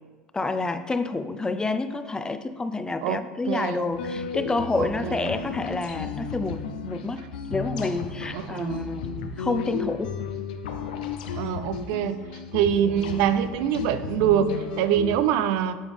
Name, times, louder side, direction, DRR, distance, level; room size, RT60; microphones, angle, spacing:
voice 1, 0.3-7.2 7.5-10.1, left 3 dB, 15° left, 10 dB, 0.5 m, -28 dB
voice 2, 3.0-3.9 4.8-5.3 8.3-8.9 11.4-12.3 12.5-15.8, right 10 dB, 70° right, 12 dB, 0.4 m, -25 dB
sound 1, 3.9-15.2, left 6 dB, 80° left, 0.6 m, -34 dB
8.6 x 4.9 x 3.4 m, 1.4 s
hypercardioid pair, 80°, 4 cm